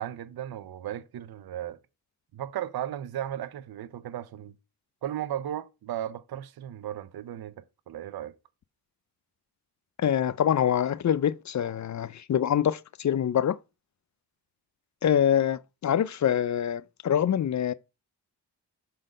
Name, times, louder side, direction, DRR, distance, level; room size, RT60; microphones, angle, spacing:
voice 1, 0.0-1.8 2.3-4.5 5.0-8.3, right 11 dB, 65° right, 0.6 m, -35 dB
voice 2, 10.0-13.6 15.0-17.7, left 9 dB, 45° left, 0.4 m, -25 dB
6.5 x 3.9 x 4.9 m
cardioid pair, 55°, 41 cm